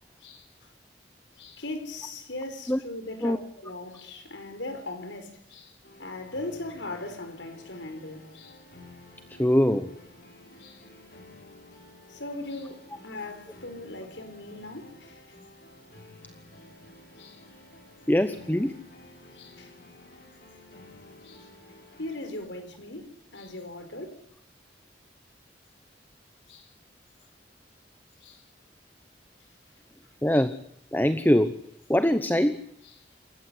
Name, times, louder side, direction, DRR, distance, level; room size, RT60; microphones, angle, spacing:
voice 1, 0.2-0.7 1.4-8.6 10.6-10.8 12.1-15.4 17.2-17.4 19.3-19.8 21.2-21.5 22.0-24.2 26.5-26.7 28.2-28.4 30.3-30.4 32.8-33.0, left 2 dB, 90° left, 4.8 m, -39 dB
sound 1, 5.8-22.3, left 1 dB, 55° left, 5.1 m, -52 dB
voice 2, 9.4-9.9 18.1-18.8 30.2-30.6 30.9-31.6 31.9-32.6, equal, 10° left, 0.9 m, -22 dB
27.5 x 15.0 x 8.3 m
head